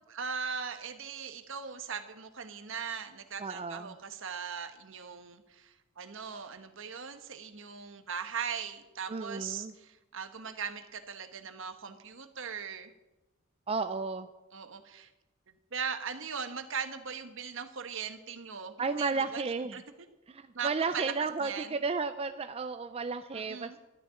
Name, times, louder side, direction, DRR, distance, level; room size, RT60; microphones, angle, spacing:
voice 1, 0.1-12.9 14.5-15.1 15.7-19.4 19.7-19.8 20.5-21.1 21.4-21.8 23.3-23.8, right 6 dB, 65° right, 8 dB, 1.2 m, -39 dB
voice 2, 3.4-3.9 9.1-9.7 13.7-14.3 18.8-19.8 20.3-23.8, right 4 dB, 30° right, 9 dB, 0.4 m, -33 dB
12.5 x 6.7 x 9.9 m, 1.0 s
head